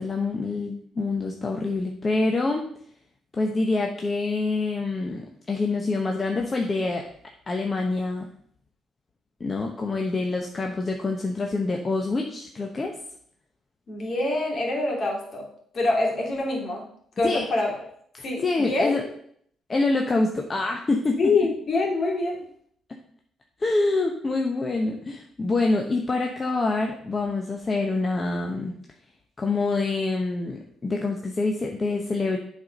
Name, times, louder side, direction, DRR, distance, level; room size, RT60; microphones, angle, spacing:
voice 1, 0.0-2.7 3.3-7.0 7.5-8.3 9.4-13.0 17.2-17.5 18.4-19.0 19.7-21.3 23.6-28.7 29.4-32.4, left 3 dB, 30° left, 2 dB, 0.9 m, -26 dB
voice 2, 13.9-15.5 15.7-16.8 17.2-17.7 18.2-19.0 21.2-22.4, left 2 dB, 50° left, 0 dB, 2.5 m, -25 dB
7.6 x 4.3 x 5.2 m, 0.64 s
cardioid pair, 90°, 0 cm